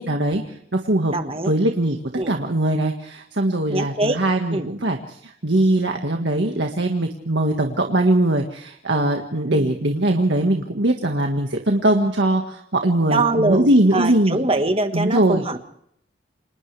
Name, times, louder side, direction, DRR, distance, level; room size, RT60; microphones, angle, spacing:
voice 1, 0.0-1.1 1.5-2.0 2.3-14.4 14.9-15.4, right 1 dB, 70° right, 2 dB, 1.8 m, -21 dB
voice 2, 1.1-1.5 2.2-2.4 3.7-4.2 4.5-4.7 9.5-9.8 13.0-15.7, right 2 dB, 30° right, 7 dB, 1.5 m, -23 dB
29.5 x 27.0 x 3.4 m, 0.70 s
head